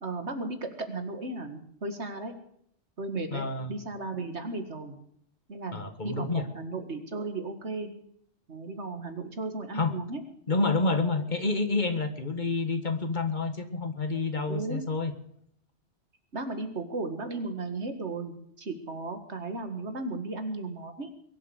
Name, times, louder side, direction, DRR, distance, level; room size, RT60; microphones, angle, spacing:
voice 1, 0.0-2.3 3.0-5.0 5.5-5.8 6.0-7.9 8.5-10.2 14.5-14.8 16.3-21.1, right 3 dB, 75° right, 7 dB, 2.3 m, -35 dB
voice 2, 3.3-3.8 5.7-6.5 9.7-9.9 10.5-15.1, left 3 dB, 45° left, 8 dB, 1.6 m, -28 dB
22.0 x 7.7 x 8.1 m, 0.67 s
omnidirectional pair, 1.2 m